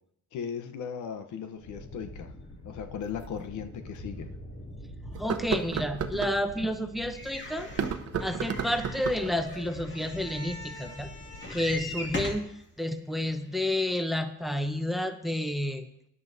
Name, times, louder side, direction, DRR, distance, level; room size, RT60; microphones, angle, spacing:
voice 1, 0.3-2.3 2.6-4.3, left 7 dB, 75° left, 9 dB, 0.9 m, -37 dB
sound 1, 1.6-12.1, left 1 dB, 55° left, 2.7 m, -44 dB
sound 2, 3.2-3.3 3.9-4.0 5.1-6.4 7.6-9.3, right 7 dB, 55° right, 0.9 m, -32 dB
voice 2, 5.2-7.7 8.2-11.1 11.5-12.5 12.8-15.9, left 1 dB, ahead, 8 dB, 0.9 m, -30 dB
sound 3, 7.1-12.5 13.2-13.3 13.6-13.7, left 2 dB, 40° left, 2.2 m, -40 dB
16.5 x 11.0 x 2.7 m, 0.75 s
cardioid pair, 90°, 30 cm